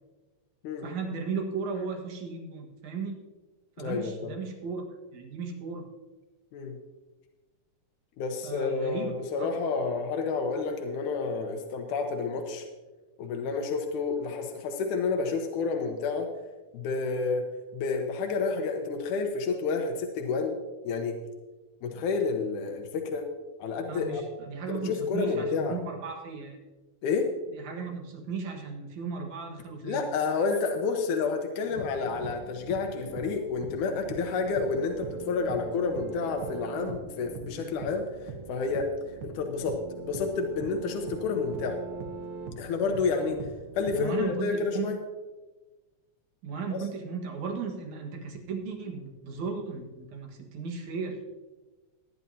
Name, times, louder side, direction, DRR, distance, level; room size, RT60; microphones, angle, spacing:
voice 1, 0.8-3.2 3.8-4.8 5.1-5.9 8.4-9.5 23.9-26.6 27.5-30.1 43.9-44.9 46.4-51.2, right 5 dB, 75° right, 2 dB, 3.0 m, -36 dB
voice 2, 3.8-4.3 6.5-6.8 8.2-12.7 13.2-16.3 16.7-17.5 17.7-20.6 20.8-21.2 21.8-23.2 23.6-24.2 24.7-25.8 27.0-27.3 29.8-38.1 38.5-38.9 39.2-39.8 40.1-41.8 42.6-43.4 43.8-45.0 46.7-46.8, left 4 dB, 85° left, 4 dB, 2.5 m, -30 dB
sound 1, 31.7-44.0, right 5 dB, 60° right, 1.5 m, -41 dB
19.5 x 10.5 x 2.8 m, 1.2 s
omnidirectional pair, 3.4 m